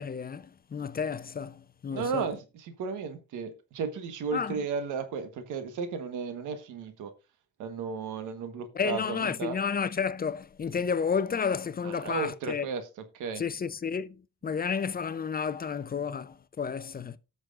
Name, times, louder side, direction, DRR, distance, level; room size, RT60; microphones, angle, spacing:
voice 1, 0.0-2.3 4.3-4.5 8.7-12.7 13.4-17.2, left 6 dB, 30° left, 0.6 m, -31 dB
voice 2, 1.9-7.1 7.6-9.6 11.8-13.4, right 5 dB, 85° right, 1.4 m, -34 dB
18.0 x 6.2 x 2.5 m
cardioid pair, 90°, 30 cm